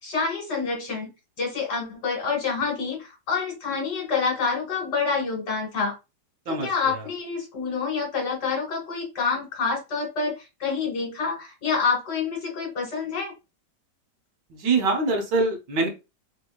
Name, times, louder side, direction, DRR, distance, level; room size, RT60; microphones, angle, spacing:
voice 1, 0.0-6.0 6.5-13.3, left 5 dB, 65° left, 2.1 m, -27 dB
voice 2, 14.5-15.9, right 3 dB, 80° right, 1.6 m, -23 dB
3.5 x 3.4 x 2.3 m
omnidirectional pair, 1.9 m